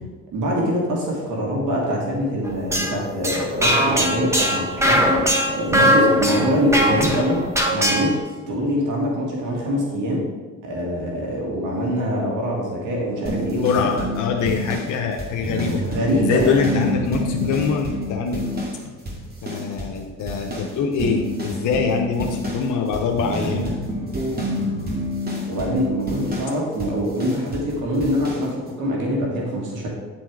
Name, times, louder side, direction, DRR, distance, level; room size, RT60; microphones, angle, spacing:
voice 1, 0.3-7.5 7.7-10.2 10.6-13.9 15.9-16.6 25.5-29.9, equal, 90° right, -2 dB, 1.9 m, -24 dB
sound 1, 2.4-8.2, equal, 10° right, 1.3 m, -20 dB
voice 2, 6.1-6.4 13.6-15.8 16.2-18.4 19.4-23.7, left 5 dB, 80° left, 2 dB, 0.8 m, -24 dB
sound 2, 13.3-18.8 19.1-20.0 20.3-27.7 28.0-28.5, equal, 30° right, 2.2 m, -28 dB
9.5 x 4.4 x 4.7 m, 1.3 s
cardioid pair, 90°, 30 cm